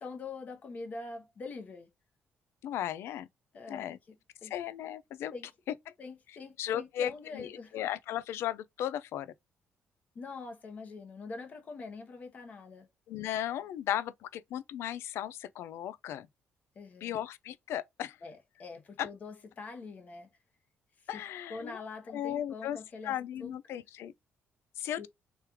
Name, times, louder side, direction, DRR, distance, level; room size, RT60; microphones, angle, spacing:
voice 1, 0.0-1.9 3.5-4.0 4.4-4.5 5.3-5.5 6.0-7.8 10.1-12.9 16.7-17.2 18.2-20.3 21.1-21.2 21.5-23.1 23.4-23.8 25.0-25.1, left 4 dB, 35° left, 1.0 m, -44 dB
voice 2, 2.6-3.3 3.7-4.0 4.4-5.3 5.7-5.8 6.6-9.3 13.1-16.3 17.0-18.2 19.0-19.1 21.1-21.8 22.1-22.8 23.0-24.1 24.8-25.1, left 11 dB, 80° left, 0.5 m, -36 dB
3.4 x 3.3 x 3.0 m
cardioid pair, 165°, 4 cm